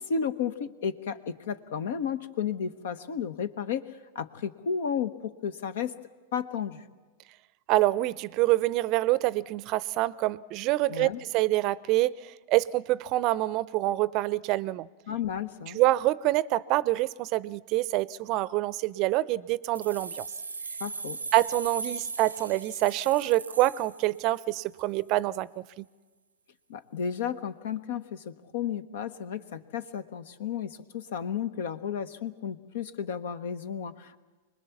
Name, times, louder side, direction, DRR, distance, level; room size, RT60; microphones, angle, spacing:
voice 1, 0.0-3.9 4.1-5.9 6.3-6.8 10.9-11.2 15.1-15.8 20.8-21.2 26.7-34.2, left 7 dB, 65° left, 13 dB, 1.2 m, -33 dB
voice 2, 7.7-14.9 15.7-20.2 21.3-25.9, right 17 dB, 45° right, 21 dB, 0.6 m, -26 dB
sound 1, 19.7-24.5, right 4 dB, 90° right, 0.7 m, -39 dB
25.5 x 20.5 x 7.2 m, 1.4 s
hypercardioid pair, 100°, 0 cm